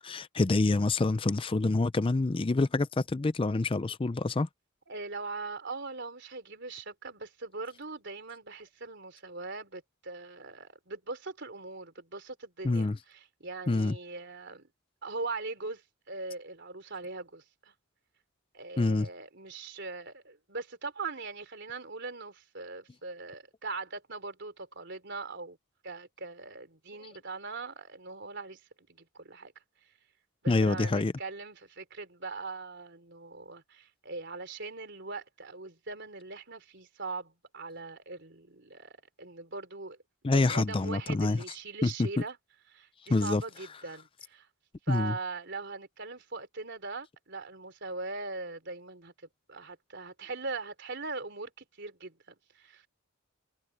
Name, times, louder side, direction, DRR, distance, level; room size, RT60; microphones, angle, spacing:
voice 1, 0.0-4.5 12.6-13.0 13.7-13.9 18.8-19.1 30.5-31.1 40.2-41.4 41.8-42.1 43.1-43.4 44.9-45.1, left 3 dB, 25° left, 0.4 m, -26 dB
voice 2, 4.9-14.7 15.0-17.7 18.5-25.6 25.8-28.6 28.9-29.5 30.4-40.0 40.2-42.4 42.7-44.5 44.9-49.1 49.5-52.9, right 3 dB, 55° right, 3.9 m, -41 dB
head